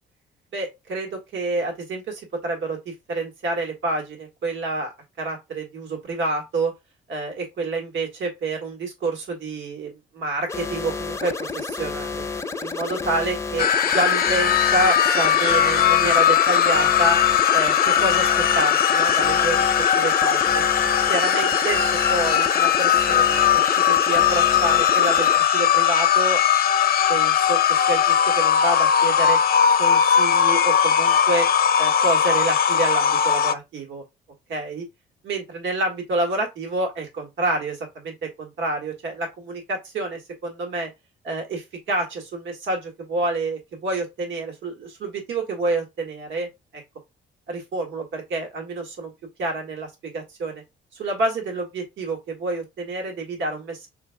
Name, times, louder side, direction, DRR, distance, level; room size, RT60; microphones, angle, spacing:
voice 1, 0.5-6.7 7.1-12.2 12.6-17.2 17.5-19.7 20.0-20.6 21.1-21.8 22.1-26.4 27.1-29.4 29.8-31.5 31.8-34.0 34.5-34.8 35.2-40.9 41.2-46.5 47.5-49.1 49.4-50.6 50.9-53.9, right 2 dB, 75° right, 1.7 m, -28 dB
sound 1, 10.5-25.4, left 4 dB, 15° left, 0.8 m, -31 dB
sound 2, 13.6-33.5, left 8 dB, 50° left, 0.6 m, -19 dB
6.2 x 3.4 x 2.2 m
cardioid pair, 90°, 20 cm